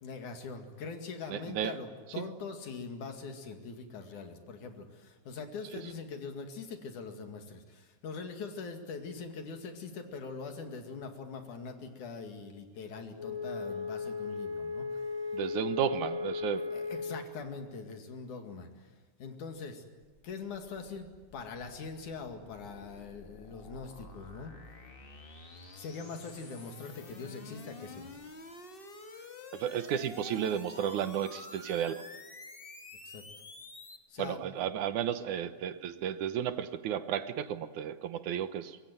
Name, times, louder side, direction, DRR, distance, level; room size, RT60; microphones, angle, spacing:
voice 1, 0.0-15.1 16.7-18.9 19.2-19.8 20.2-24.6 25.7-28.1 33.0-33.2 34.1-34.5, left 4 dB, 75° left, 5 dB, 3.7 m, -42 dB
voice 2, 1.3-1.8 2.2-2.3 15.3-16.7 29.5-32.1 34.2-38.8, right 9 dB, 75° right, 11 dB, 2.5 m, -33 dB
Wind instrument woodwind instrument, 13.1-17.3, left 4 dB, 45° right, 2.0 m, -36 dB
sound 1, 20.0-34.0, left 3 dB, 30° left, 1.0 m, -50 dB
25.0 x 22.0 x 9.4 m, 1.3 s
omnidirectional pair, 3.5 m